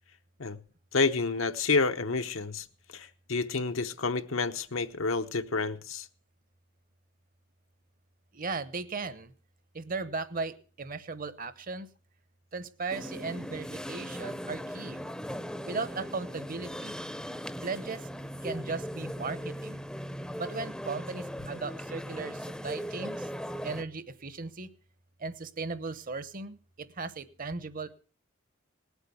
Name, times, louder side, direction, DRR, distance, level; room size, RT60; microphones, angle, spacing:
voice 1, 0.9-2.6 2.9-6.1, left 4 dB, 80° left, 0.9 m, -29 dB
voice 2, 8.3-9.3 9.7-11.9 12.5-15.0 15.6-17.0 17.6-18.1 18.4-19.8 20.4-23.3 23.6-24.7 25.2-27.9, right 4 dB, 45° right, 0.9 m, -37 dB
sound 1, 12.9-23.8, equal, 5° left, 0.6 m, -39 dB
18.5 x 8.1 x 6.9 m
head